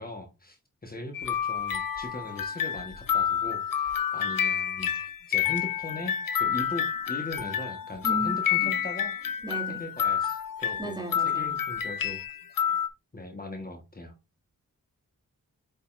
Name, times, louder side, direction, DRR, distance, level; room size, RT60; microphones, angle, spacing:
voice 1, 0.0-9.1 9.7-11.0 11.2-12.2 13.1-14.1, left 1 dB, 30° left, 1.4 m, -40 dB
sound 1, 1.1-12.9, left 9 dB, 85° left, 0.8 m, -29 dB
voice 2, 8.0-8.8 9.4-9.9 10.8-11.5, right 2 dB, 15° right, 2.3 m, -36 dB
8.7 x 5.2 x 2.6 m
wide cardioid pair, 90°, 33 cm